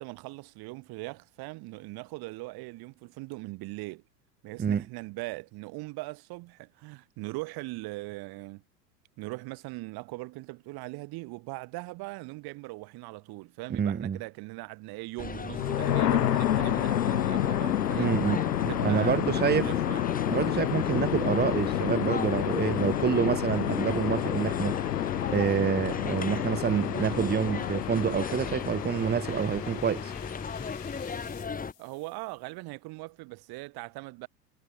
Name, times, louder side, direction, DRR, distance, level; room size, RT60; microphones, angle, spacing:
voice 1, 0.0-4.0 4.4-8.6 9.2-18.1 18.6-20.0 31.1-34.3, right 23 dB, 50° right, 7.0 m, -40 dB
voice 2, 13.7-14.2 18.0-19.7 20.3-24.8 25.3-30.1, right 7 dB, 20° right, 1.6 m, -27 dB
sound 1, 15.2-31.7, left 5 dB, 15° left, 3.0 m, -37 dB
sound 2, 15.5-31.4, left 11 dB, 80° left, 0.8 m, -29 dB
figure-of-eight pair, 80°, 48 cm